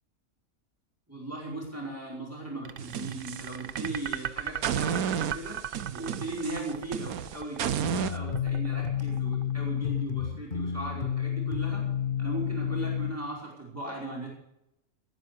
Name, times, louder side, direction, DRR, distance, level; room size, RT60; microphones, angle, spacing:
voice 1, 1.1-5.6 5.9-11.9 12.2-14.3, right 2 dB, 10° right, -3 dB, 4.9 m, -38 dB
sound 1, 2.6-9.8, right 9 dB, 50° right, 0.6 m, -38 dB
sound 2, 2.8-4.2 4.6-8.2, right 8 dB, 75° right, 1.3 m, -32 dB
sound 3, 7.8-13.2, left 8 dB, 35° left, 1.3 m, -30 dB
18.0 x 9.6 x 6.7 m, 0.84 s
omnidirectional pair, 1.6 m